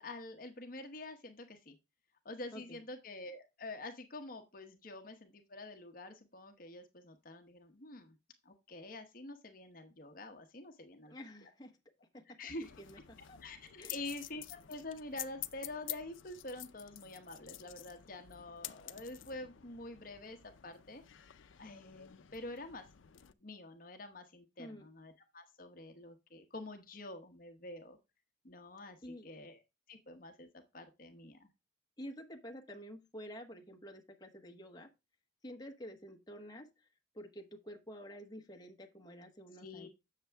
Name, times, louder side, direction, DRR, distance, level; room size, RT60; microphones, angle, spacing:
voice 1, 0.0-1.7 2.2-8.2 8.4-11.1 11.4-11.5 12.3-12.7 13.4-21.0 21.6-22.9 23.4-28.0 28.4-29.6 29.9-31.5 39.6-39.9, left 2 dB, 45° left, 0.9 m, -47 dB
voice 2, 11.1-11.8 12.1-12.5 12.8-13.4 13.8-14.0 24.6-24.9 29.0-29.3 32.0-34.9 35.4-36.7 37.1-39.9, equal, 20° left, 1.1 m, -49 dB
sound 1, 12.6-23.3, left 14 dB, 90° left, 0.5 m, -50 dB
7.9 x 6.7 x 3.4 m
head